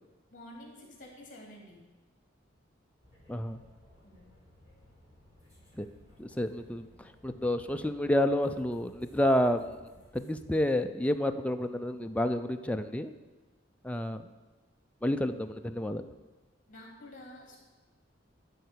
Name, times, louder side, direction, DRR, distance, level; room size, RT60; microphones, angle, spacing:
voice 1, 0.3-1.8 4.0-4.3 16.7-17.6, left 1 dB, 45° left, -1 dB, 3.3 m, -49 dB
sound 1, 3.0-10.3, left 1 dB, 15° right, 3.9 m, -59 dB
voice 2, 6.2-9.8 10.1-13.1 13.8-14.3 15.0-16.0, left 1 dB, 5° left, 7 dB, 0.5 m, -29 dB
12.0 x 4.7 x 8.5 m, 1.3 s
head